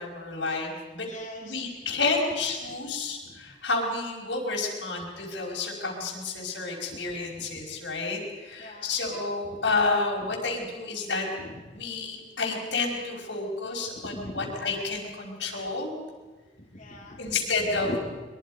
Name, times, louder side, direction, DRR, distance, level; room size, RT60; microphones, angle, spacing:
voice 1, 0.0-1.1 1.4-11.3 11.7-15.9 17.2-17.9, left 3 dB, 85° left, 0 dB, 5.3 m, -30 dB
voice 2, 1.0-1.6 3.2-3.4 7.4-7.6 8.6-9.0 9.5-9.6 11.4-11.6 13.9-14.5 16.6-17.3 17.8-18.0, left 1 dB, 40° left, -3 dB, 3.2 m, -40 dB
23.5 x 23.0 x 5.3 m, 1.3 s
head